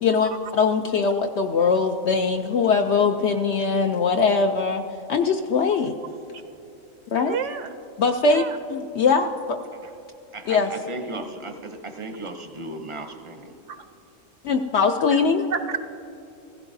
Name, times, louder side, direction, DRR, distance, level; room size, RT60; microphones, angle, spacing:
voice 1, 0.0-4.8 5.1-6.0 7.1-7.4 8.0-9.6 10.5-10.7 14.4-15.4, left 5 dB, 65° left, 4 dB, 0.7 m, -21 dB
voice 2, 7.3-7.7 8.2-8.6 13.7-13.8 15.5-15.8, right 7 dB, 70° right, 9 dB, 0.9 m, -29 dB
voice 3, 10.3-13.5, right 2 dB, 30° right, 6 dB, 0.6 m, -35 dB
16.0 x 15.0 x 2.6 m, 2.8 s
omnidirectional pair, 1.4 m